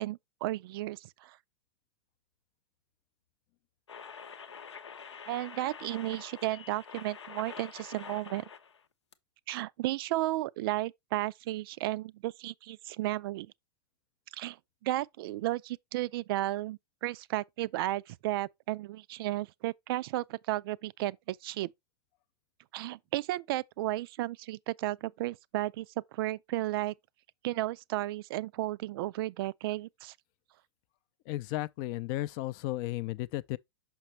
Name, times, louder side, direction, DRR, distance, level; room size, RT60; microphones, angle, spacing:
voice 1, 0.0-1.4 5.3-8.4 9.5-13.5 14.3-14.6 14.8-21.7 22.7-25.9 26.1-26.9 27.4-30.1, right 16 dB, 55° right, 0.4 m, -33 dB
sound 1, 3.9-8.8 9.1-9.2, left 6 dB, 85° left, 0.7 m, -47 dB
voice 2, 31.2-33.6, left 16 dB, 50° left, 0.5 m, -34 dB
6.0 x 5.8 x 3.1 m
hypercardioid pair, 100°, 14 cm